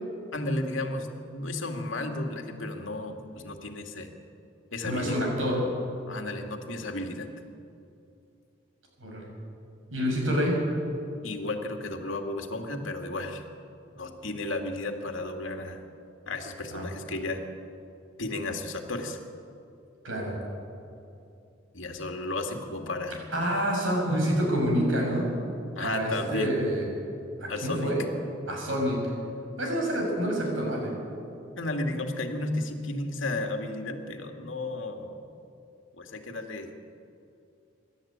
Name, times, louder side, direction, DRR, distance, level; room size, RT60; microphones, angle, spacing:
voice 1, 0.3-4.1 4.7-5.3 6.1-7.3 11.2-13.4 14.0-15.8 16.3-17.4 18.2-19.2 21.7-23.2 25.8-26.6 27.5-27.9 31.6-35.3 35.9-36.7, left 2 dB, 75° left, 4 dB, 2.4 m, -33 dB
voice 2, 4.8-5.6 9.0-9.3 9.9-10.5 16.7-16.8 20.0-20.3 23.3-25.3 25.8-26.8 27.4-28.0 28.5-29.0 29.6-30.9, equal, 85° right, -1 dB, 7.1 m, -27 dB
26.5 x 13.0 x 9.0 m, 2.6 s
head